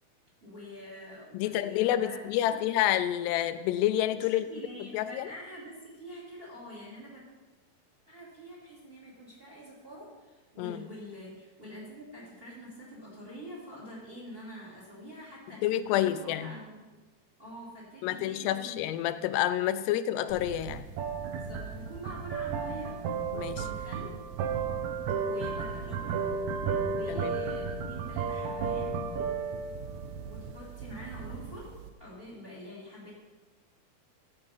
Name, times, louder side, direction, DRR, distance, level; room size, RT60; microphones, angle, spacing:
voice 1, 0.4-2.6 4.3-7.2 8.1-16.8 17.4-18.8 21.3-23.0 23.5-24.1 25.2-26.2 26.8-28.9 30.2-33.1, equal, 15° right, -5 dB, 3.3 m, -46 dB
voice 2, 1.3-4.5 4.9-5.3 10.6-10.8 15.6-16.6 18.0-20.9 23.3-23.7 27.1-27.4, left 12 dB, 90° left, 12 dB, 2.7 m, -28 dB
sound 1, 20.3-31.9, right 5 dB, 80° right, 1.6 m, -34 dB
13.5 x 7.9 x 5.5 m, 1.2 s
omnidirectional pair, 4.7 m